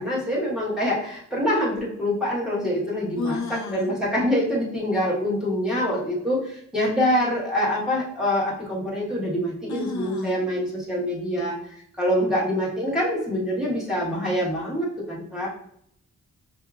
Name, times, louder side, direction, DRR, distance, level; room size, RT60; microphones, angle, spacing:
voice 1, 0.0-11.5 12.0-15.5, equal, ahead, -7 dB, 1.2 m, -25 dB
voice 2, 3.2-3.9 9.7-10.4, left 4 dB, 65° left, 2 dB, 0.6 m, -31 dB
5.6 x 2.8 x 2.4 m, 0.69 s
wide cardioid pair, 160°, 30 cm